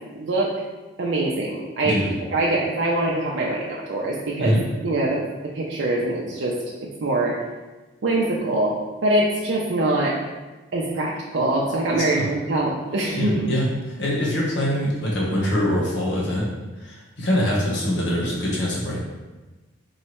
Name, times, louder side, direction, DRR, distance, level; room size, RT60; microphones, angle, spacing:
voice 1, 0.1-0.5 1.0-2.0 2.3-4.6 4.8-5.2 5.5-7.4 8.0-8.7 9.0-10.2 10.7-13.4, right 2 dB, 85° right, -4 dB, 0.6 m, -23 dB
voice 2, 11.9-12.3 13.2-16.5 16.8-19.0, equal, 75° left, -5 dB, 1.2 m, -24 dB
4.6 x 3.1 x 3.0 m, 1.2 s
head